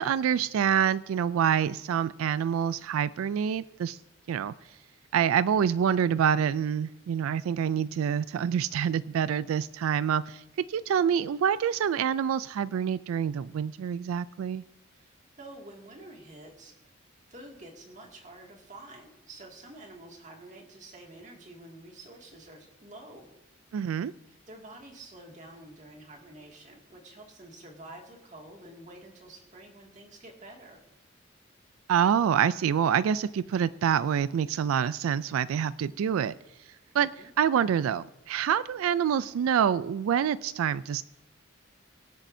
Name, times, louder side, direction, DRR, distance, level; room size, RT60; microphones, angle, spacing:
voice 1, 0.0-4.0 4.3-4.5 5.1-10.4 10.7-14.6 23.7-24.1 31.9-36.3 36.9-37.1 37.4-41.0, right 8 dB, 90° right, 16 dB, 0.3 m, -26 dB
voice 2, 14.9-16.9 17.3-23.3 24.3-30.8 37.0-37.3, right 1 dB, 35° right, 1 dB, 2.2 m, -48 dB
24.0 x 8.3 x 2.7 m, 0.96 s
head